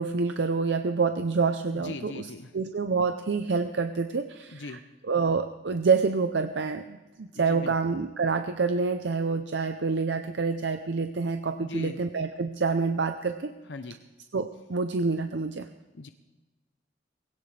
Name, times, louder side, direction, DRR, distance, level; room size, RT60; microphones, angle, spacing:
voice 1, 0.0-2.3 2.5-4.8 5.1-13.5 14.3-15.7, right 4 dB, 70° right, 8 dB, 0.6 m, -27 dB
voice 2, 1.7-2.5 4.5-4.8 7.3-7.7 11.5-12.0 13.7-14.0 15.9-16.1, left 3 dB, 75° left, 8 dB, 0.7 m, -40 dB
20.0 x 17.5 x 3.3 m, 1.2 s
head